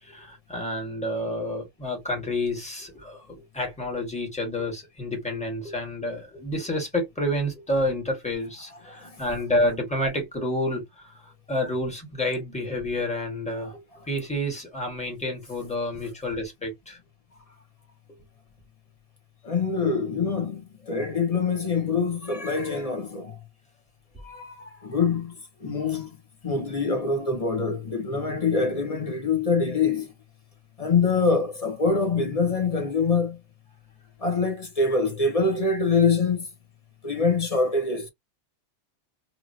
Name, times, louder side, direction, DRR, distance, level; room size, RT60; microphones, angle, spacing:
voice 1, 0.0-13.8 14.1-17.0, left 1 dB, 5° left, 1.5 m, -29 dB
voice 2, 8.7-9.2 13.6-13.7 19.4-23.4 24.2-25.3 25.6-26.2 26.4-30.1 30.8-33.4 34.2-36.5 37.0-38.1, left 4 dB, 35° left, 0.9 m, -25 dB
2.9 x 2.8 x 2.7 m
omnidirectional pair, 1.2 m